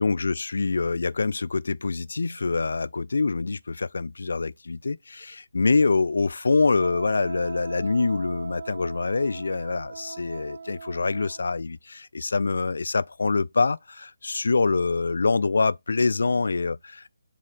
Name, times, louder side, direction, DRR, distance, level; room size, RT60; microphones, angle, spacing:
voice 1, 0.0-17.1, left 4 dB, 65° left, 0.3 m, -25 dB
Wind instrument woodwind instrument, 6.8-11.5, right 5 dB, 55° right, 0.4 m, -39 dB
7.5 x 2.8 x 4.9 m
figure-of-eight pair, 150°, 0 cm